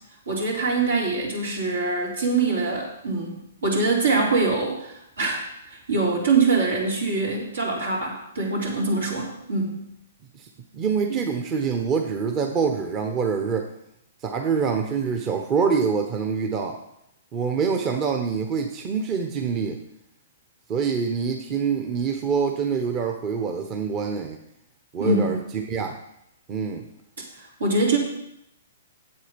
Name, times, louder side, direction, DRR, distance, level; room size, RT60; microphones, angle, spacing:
voice 1, 0.3-3.4 3.6-9.8 25.0-25.4 27.4-28.0, right 3 dB, 80° right, -2 dB, 3.6 m, -24 dB
voice 2, 10.7-13.7 14.2-16.8 17.3-19.8 20.7-24.4 24.9-25.9 26.5-26.9, right 6 dB, 30° right, 3 dB, 0.9 m, -25 dB
8.3 x 8.0 x 5.3 m, 0.78 s
hypercardioid pair, 130°, 0 cm